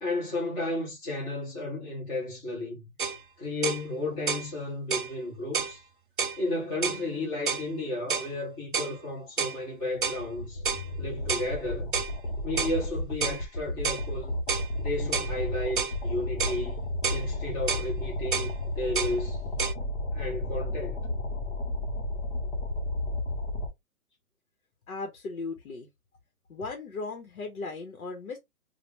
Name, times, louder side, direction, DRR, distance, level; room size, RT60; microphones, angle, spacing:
voice 1, 0.0-2.9 3.4-5.8 6.4-10.6 11.0-11.9 12.4-14.3 14.8-16.8 17.1-19.4 20.1-21.0, left 2 dB, 10° left, 0.7 m, -33 dB
sound 1, 3.0-3.2 3.6-3.8 4.3-4.5 4.9-5.1 5.5-5.8 6.2-6.4 6.8-7.0 7.5-7.7 8.1-8.3 8.7-9.0 9.4-9.6 10.0-10.2 10.7-10.9 11.3-11.5 11.9-12.1 12.6-12.8 13.2-13.4 13.8-14.1 14.5-14.7 15.1-15.3 15.8-16.0 16.4-16.6 17.0-17.3 17.7-17.9 18.3-18.5 19.0-19.2 19.6-19.7, right 6 dB, 40° right, 0.4 m, -30 dB
sound 2, 9.9-23.7, left 1 dB, 50° left, 1.2 m, -32 dB
voice 2, 24.9-25.9 26.5-28.4, left 3 dB, 75° left, 1.1 m, -37 dB
3.3 x 2.4 x 2.9 m
hypercardioid pair, 165°, 42 cm